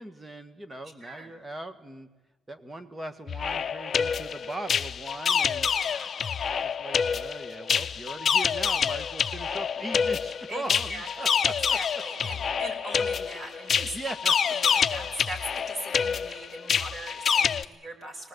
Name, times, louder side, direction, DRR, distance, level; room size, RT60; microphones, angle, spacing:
voice 1, 0.0-2.1 2.5-5.7 6.6-12.0 13.8-14.6, right 1 dB, 20° right, 10 dB, 1.7 m, -40 dB
voice 2, 1.0-1.3 5.8-6.1 10.5-11.4 11.7-14.0 14.5-15.4 15.7-18.3, right 1 dB, 35° right, 3 dB, 5.4 m, -40 dB
sound 1, 3.3-17.6, left 7 dB, 50° left, 0.6 m, -27 dB
24.0 x 18.5 x 8.1 m, 1.2 s
cardioid pair, 90°, 0 cm